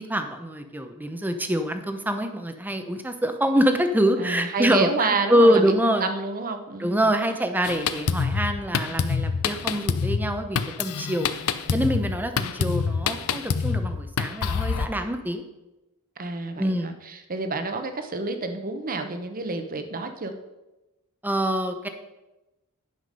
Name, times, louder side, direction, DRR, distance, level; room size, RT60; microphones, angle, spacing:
voice 1, 0.0-6.1 6.8-11.3 11.7-15.4 16.6-16.9 21.2-21.9, equal, 10° right, 7 dB, 0.7 m, -25 dB
voice 2, 4.2-7.1 16.2-20.3, right 3 dB, 40° right, 7 dB, 0.9 m, -29 dB
Drum kit, 7.6-14.9, left 5 dB, 80° left, 0.6 m, -26 dB
10.5 x 5.9 x 5.3 m, 1.0 s
head